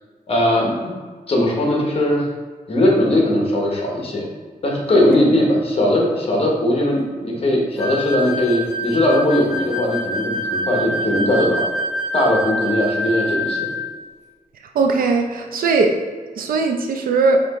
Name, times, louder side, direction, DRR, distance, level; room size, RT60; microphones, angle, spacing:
voice 1, 0.3-0.9 1.3-2.2 2.7-4.3 4.6-11.6 12.1-13.7, left 1 dB, 45° left, -1 dB, 1.0 m, -19 dB
sound 1, 7.8-13.9, equal, 20° left, 0.9 m, -26 dB
voice 2, 14.7-16.0 16.4-17.4, right 3 dB, 90° right, 3 dB, 0.5 m, -18 dB
5.0 x 2.8 x 3.6 m, 1.5 s
wide cardioid pair, 155°, 14 cm